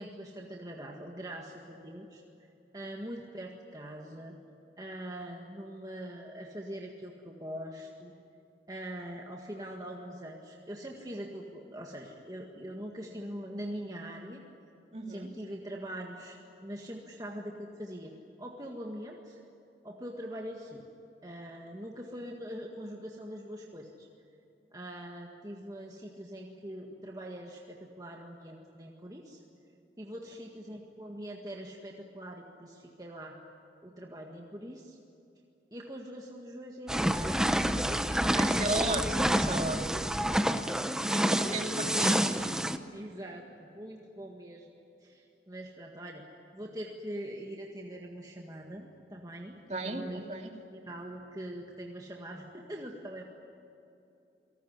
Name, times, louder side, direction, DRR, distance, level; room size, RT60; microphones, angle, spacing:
voice 1, 0.0-2.2 2.7-4.4 4.8-8.1 8.7-14.4 15.1-18.1 18.4-19.4 19.8-20.9 21.2-24.1 24.7-29.4 30.0-33.4 33.8-35.0 35.7-37.5 37.9-38.6 40.6-41.6 42.9-46.2 46.5-49.6 49.9-53.2, equal, 20° right, 0 dB, 1.8 m, -43 dB
voice 2, 14.9-15.3 38.3-40.0 41.1-42.3 49.7-50.5, right 2 dB, 40° right, 3 dB, 2.4 m, -34 dB
sound 1, 36.9-42.8, equal, 5° right, 0.8 m, -28 dB
28.5 x 19.0 x 9.7 m, 2.8 s
head